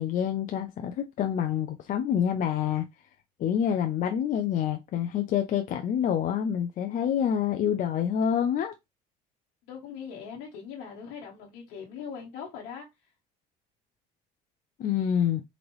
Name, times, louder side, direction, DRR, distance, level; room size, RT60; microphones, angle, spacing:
voice 1, 0.0-2.9 3.4-8.7 14.8-15.4, left 9 dB, 50° left, 0.6 m, -27 dB
voice 2, 9.7-13.1, left 7 dB, 75° left, 1.2 m, -41 dB
3.9 x 2.9 x 3.1 m
cardioid pair, 110°, 17 cm